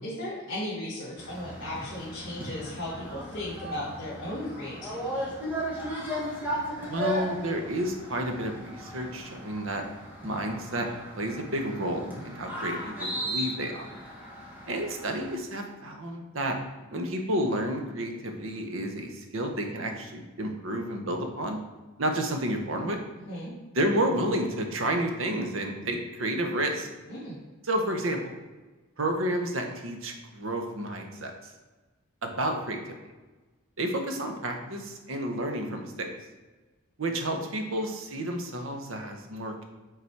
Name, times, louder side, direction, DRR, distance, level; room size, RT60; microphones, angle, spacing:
voice 1, 0.0-5.3 23.3-23.5 27.1-27.4, left 1 dB, 55° left, -8 dB, 1.7 m, -36 dB
sound 1, 1.2-15.4, equal, 10° right, 1.2 m, -36 dB
voice 2, 6.9-9.8 10.2-10.9 11.2-13.8 14.7-16.6 16.9-21.6 22.0-23.0 23.7-26.9 27.7-28.3 29.0-31.5 32.2-33.0 33.8-36.1 37.0-39.6, right 1 dB, 65° right, 4 dB, 0.9 m, -30 dB
5.5 x 3.9 x 4.6 m, 1.2 s
head